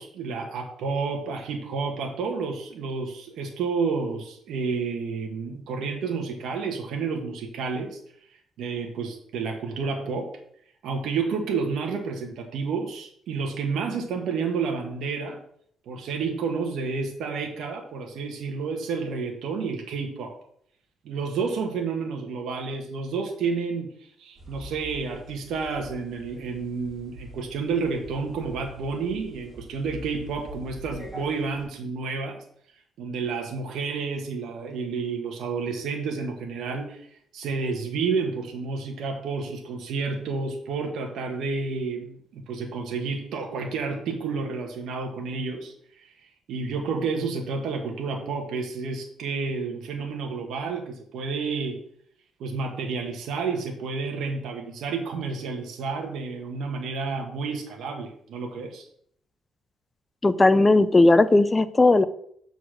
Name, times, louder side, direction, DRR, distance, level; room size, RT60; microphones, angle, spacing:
voice 1, 0.0-8.0 8.6-10.3 10.8-15.4 15.9-20.3 21.0-32.4 33.0-46.1 46.5-51.8 52.4-58.9, right 4 dB, 80° right, 3 dB, 1.3 m, -30 dB
sound 1, 24.4-31.6, left 1 dB, 25° right, 3.1 m, -44 dB
voice 2, 60.2-62.0, left 2 dB, 20° left, 14 dB, 0.5 m, -17 dB
6.5 x 4.0 x 6.3 m, 0.65 s
cardioid pair, 90°, 0 cm